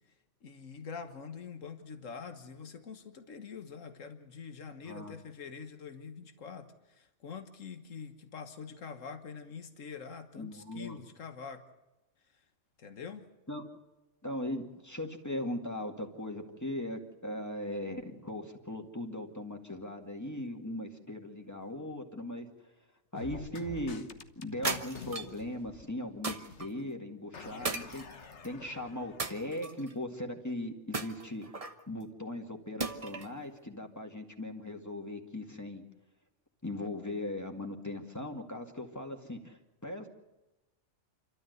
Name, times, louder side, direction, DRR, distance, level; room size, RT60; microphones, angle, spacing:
voice 1, 0.4-11.7 12.3-12.4 12.8-13.3, left 6 dB, 85° left, 8 dB, 1.7 m, -45 dB
voice 2, 10.4-11.0 13.5-13.6 14.2-22.7 23.1-24.1 24.4-31.5 31.9-35.8 36.6-40.2, left 1 dB, 15° left, 3 dB, 2.2 m, -39 dB
sound 1, 23.2-26.2 26.5-26.6 27.3-29.7, left 5 dB, 65° left, 1.5 m, -48 dB
sound 2, 24.6-25.4 26.2-26.7 27.6-28.5 29.2-29.9 30.9-31.8 32.8-33.4, right 3 dB, 30° right, 1.2 m, -36 dB
28.5 x 13.0 x 8.1 m, 1.0 s
omnidirectional pair, 1.3 m